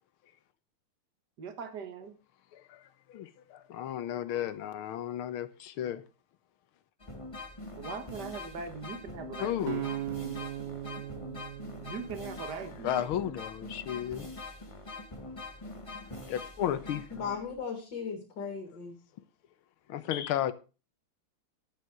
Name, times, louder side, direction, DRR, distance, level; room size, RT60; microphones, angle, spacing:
voice 1, 1.4-2.2 7.8-9.9 11.8-13.0, right 5 dB, 50° right, 2.0 m, -41 dB
voice 2, 2.5-2.8 3.1-6.0 9.4-10.0 10.4-11.0 12.8-14.3 15.6-15.7 16.3-17.2 19.9-20.5, left 11 dB, 80° left, 1.7 m, -34 dB
sound 1, 7.0-17.6, left 2 dB, 20° left, 1.2 m, -44 dB
sound 2, 9.7-12.8, right 13 dB, 70° right, 1.0 m, -38 dB
voice 3, 17.2-19.0, left 6 dB, 55° left, 2.8 m, -37 dB
11.0 x 9.2 x 4.7 m
omnidirectional pair, 2.3 m